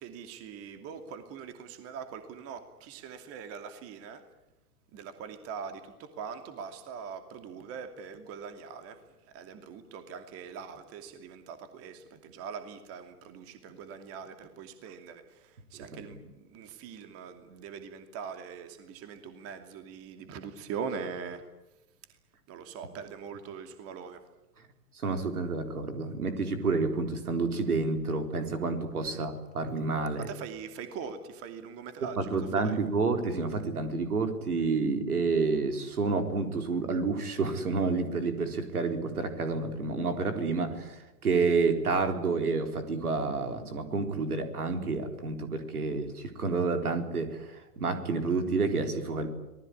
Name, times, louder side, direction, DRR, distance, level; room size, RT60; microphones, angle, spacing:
voice 1, 0.0-4.2 4.9-8.9 9.3-15.2 15.7-21.4 22.5-24.2 29.1-29.2 30.2-32.3 32.6-32.8, right 6 dB, 30° right, 8 dB, 2.7 m, -42 dB
voice 2, 15.8-16.2 25.0-30.3 32.2-47.5 47.8-49.3, right 4 dB, 70° right, 7 dB, 4.1 m, -29 dB
26.0 x 19.5 x 10.0 m, 1.0 s
figure-of-eight pair, 105°, 46 cm